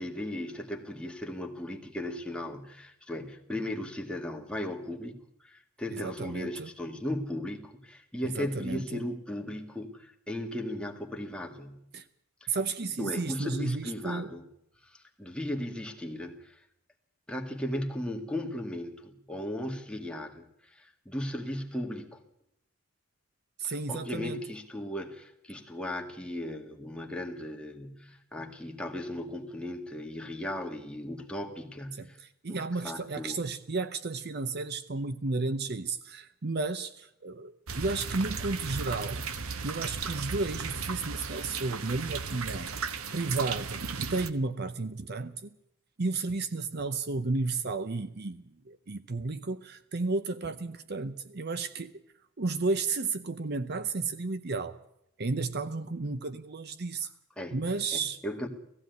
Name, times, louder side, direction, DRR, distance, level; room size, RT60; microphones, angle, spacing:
voice 1, 0.0-11.8 12.4-12.6 13.0-14.4 14.8-16.6 17.3-22.2 23.6-32.2 32.5-33.5 57.4-57.6 57.9-58.5, left 1 dB, 5° left, 2 dB, 1.9 m, -37 dB
voice 2, 5.9-6.7 8.4-9.0 11.9-12.0 12.5-14.3 23.6-24.4 31.9-39.2 39.6-42.7 43.1-43.8 44.1-45.5 46.0-52.0 52.4-54.8 55.2-57.1 57.5-58.2, right 3 dB, 45° right, 13 dB, 0.7 m, -33 dB
sound 1, 37.7-44.3, right 5 dB, 70° right, 1.2 m, -36 dB
18.0 x 15.5 x 9.4 m, 0.78 s
head